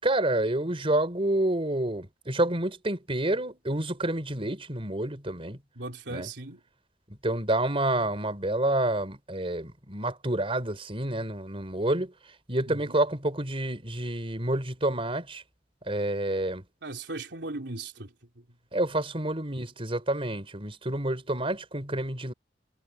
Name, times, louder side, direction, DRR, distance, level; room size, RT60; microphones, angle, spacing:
voice 1, 0.0-5.6 6.1-6.3 7.2-12.1 12.5-15.4 15.9-16.6 18.7-22.3, right 1 dB, 30° right, 4.7 m, -28 dB
voice 2, 5.7-6.6 12.7-13.0 16.8-18.4, right 2 dB, 90° right, 3.5 m, -38 dB
head